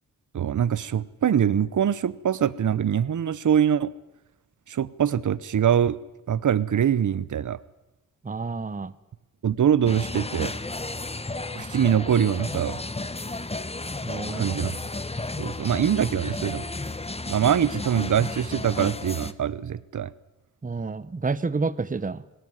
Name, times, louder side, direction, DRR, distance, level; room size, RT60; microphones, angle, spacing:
voice 1, 0.3-3.9 4.7-6.0 6.3-7.6 9.4-10.5 11.5-12.8 14.3-14.7 15.4-16.6 17.3-20.1, right 9 dB, 65° right, 19 dB, 0.8 m, -23 dB
voice 2, 8.2-8.9 14.0-14.5 20.6-22.2, right 4 dB, 25° right, 16 dB, 0.9 m, -29 dB
sound 1, 9.8-19.3, left 2 dB, 20° left, 1.0 m, -33 dB
19.0 x 18.0 x 9.7 m, 0.97 s
cardioid pair, 70°, 32 cm